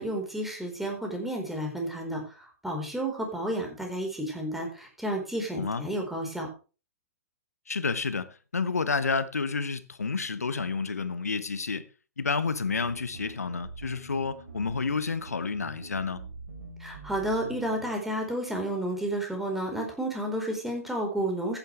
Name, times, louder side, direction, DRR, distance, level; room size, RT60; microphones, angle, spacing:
voice 1, 0.0-6.5 16.8-21.6, right 1 dB, 5° right, 4.6 m, -31 dB
voice 2, 5.5-5.9 7.7-11.8 12.2-16.2, left 4 dB, 80° left, 1.1 m, -30 dB
sound 1, 12.6-17.9, right 3 dB, 75° right, 3.8 m, -44 dB
14.5 x 10.0 x 3.4 m
figure-of-eight pair, 115°, 8 cm